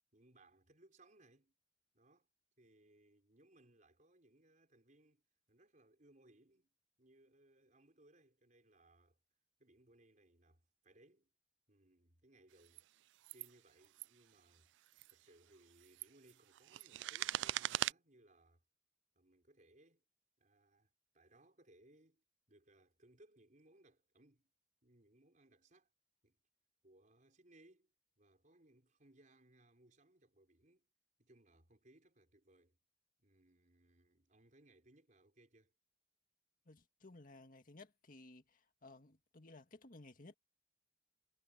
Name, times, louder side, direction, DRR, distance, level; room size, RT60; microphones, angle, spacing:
voice 1, 0.1-1.5 1.9-2.3 2.6-5.2 5.5-6.7 7.0-9.2 9.6-11.3 11.7-12.8 13.3-14.7 15.1-18.6 19.1-20.0 20.4-24.5 24.8-25.9 26.2-26.4 26.8-27.9 28.2-30.9 31.2-32.8 33.2-35.7, right 1 dB, 45° right, 4.9 m, -67 dB
sound 1, 12.6-12.8 13.2-13.5 13.8-14.1 14.9-15.1 15.7-17.9, right 13 dB, 75° right, 0.3 m, -40 dB
voice 2, 36.7-40.3, left 2 dB, 50° left, 1.9 m, -58 dB
head